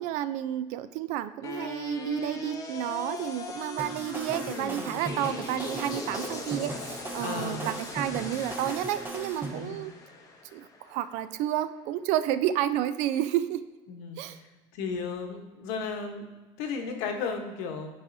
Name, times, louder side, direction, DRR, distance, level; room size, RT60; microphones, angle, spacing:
voice 1, 0.0-9.9 10.5-13.6 14.2-14.4, right 12 dB, 65° right, 12 dB, 0.4 m, -31 dB
sound 1, 1.4-11.5, left 3 dB, 25° left, 0.6 m, -40 dB
sound 2, 3.8-9.5, right 2 dB, 15° right, 0.5 m, -38 dB
voice 2, 7.2-7.7 9.5-9.8 13.9-14.5 14.7-16.3 16.6-17.9, left 5 dB, 80° left, 4 dB, 1.0 m, -34 dB
8.6 x 4.8 x 2.6 m, 1.2 s
cardioid pair, 160°, 13 cm